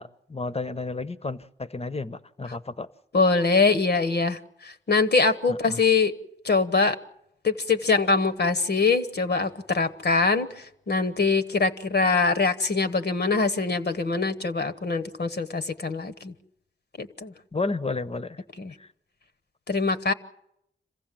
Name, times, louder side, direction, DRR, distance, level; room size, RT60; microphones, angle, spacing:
voice 1, 0.0-2.9 5.5-5.8 17.5-18.4 18.8-18.9, left 3 dB, 30° left, 0.9 m, -32 dB
voice 2, 3.1-6.1 6.4-7.0 7.4-16.3 17.0-17.3 18.6-18.7 19.7-20.1, left 4 dB, 55° left, 1.1 m, -23 dB
26.5 x 15.5 x 7.6 m
cardioid pair, 50°, 20 cm